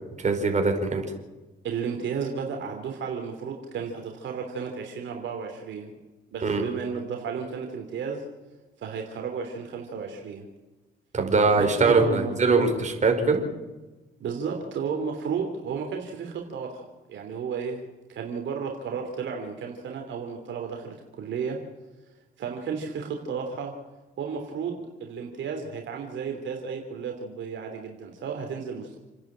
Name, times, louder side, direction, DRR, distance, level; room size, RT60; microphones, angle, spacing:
voice 1, 0.2-1.0 6.4-6.6 11.1-13.4, right 4 dB, 35° right, 3 dB, 5.1 m, -22 dB
voice 2, 1.6-6.0 6.3-8.2 8.8-10.5 11.5-12.7 14.2-17.8 18.1-21.6 22.4-23.7 24.2-29.0, right 6 dB, 70° right, 2 dB, 3.3 m, -33 dB
29.0 x 10.5 x 8.9 m, 1.2 s
cardioid pair, 90°, 20 cm